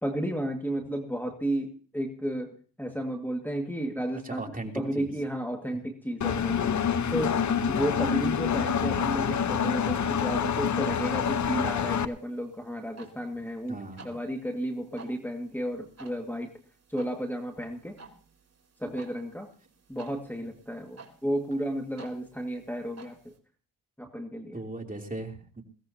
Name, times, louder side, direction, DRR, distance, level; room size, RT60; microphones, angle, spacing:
voice 1, 0.0-4.4 4.8-6.8 7.1-7.4 7.7-13.8 14.0-16.5 16.9-18.0 18.8-19.5 19.9-23.3 24.0-24.6, right 1 dB, 5° left, 2 dB, 1.9 m, -33 dB
voice 2, 4.2-5.1 5.7-5.8 13.7-14.1 24.5-25.6, right 2 dB, 20° right, 3 dB, 2.9 m, -38 dB
Engine, 6.2-12.1, left 7 dB, 45° left, 0.9 m, -27 dB
sound 1, 7.4-23.4, right 4 dB, 40° right, 3.4 m, -54 dB
21.5 x 16.5 x 2.8 m, 0.39 s
cardioid pair, 65°, 38 cm